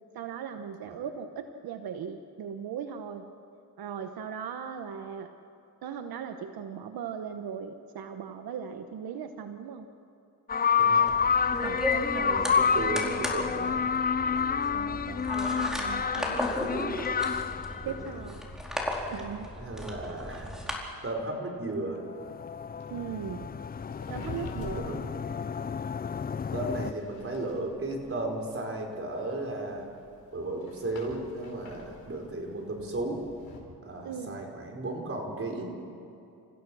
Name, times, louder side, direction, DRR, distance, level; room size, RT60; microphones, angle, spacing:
voice 1, 0.1-3.3 3.8-5.3 5.8-9.9 11.6-12.7 14.7-17.0 17.8-18.4 19.1-19.5 22.9-23.5 24.1-24.9 34.0-34.4, right 7 dB, 80° right, 7 dB, 1.1 m, -38 dB
sound 1, 10.5-18.1 22.1-26.9, left 6 dB, 25° left, 0.4 m, -29 dB
voice 2, 10.8-11.1 12.3-13.8 17.5-18.0 19.6-20.6 21.0-22.0 24.8-25.0 26.5-29.9 30.3-33.2 33.8-35.7, right 2 dB, 35° right, 1 dB, 4.7 m, -35 dB
sound 2, 11.1-20.8, left 1 dB, ahead, 4.3 m, -35 dB
sound 3, 22.8-33.6, left 3 dB, 70° left, 5.1 m, -49 dB
29.5 x 15.5 x 6.3 m, 2.7 s
cardioid pair, 95°, 36 cm